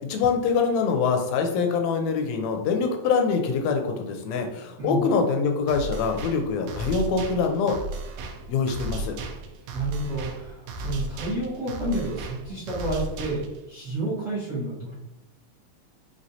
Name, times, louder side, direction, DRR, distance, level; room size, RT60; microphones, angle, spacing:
voice 1, 0.1-7.8 8.5-9.1, left 5 dB, 80° left, 4 dB, 1.6 m, -24 dB
voice 2, 4.8-5.1 9.7-14.9, right 1 dB, 50° right, -9 dB, 0.9 m, -30 dB
sound 1, 5.7-13.7, right 2 dB, 85° right, 1.5 m, -35 dB
5.2 x 3.1 x 2.7 m, 0.92 s
omnidirectional pair, 3.5 m